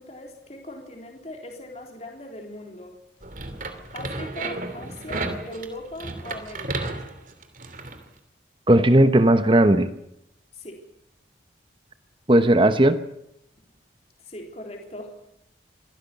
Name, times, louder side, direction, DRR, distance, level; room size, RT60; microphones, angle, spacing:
voice 1, 0.0-3.0 3.9-7.0 10.5-10.8 14.2-15.1, left 1 dB, 35° left, 2 dB, 3.7 m, -39 dB
sound 1, 3.2-8.0, right 2 dB, 45° right, 2.8 m, -33 dB
voice 2, 8.7-9.9 12.3-13.0, right 1 dB, 25° right, 10 dB, 1.0 m, -16 dB
25.5 x 16.5 x 8.4 m, 0.81 s
head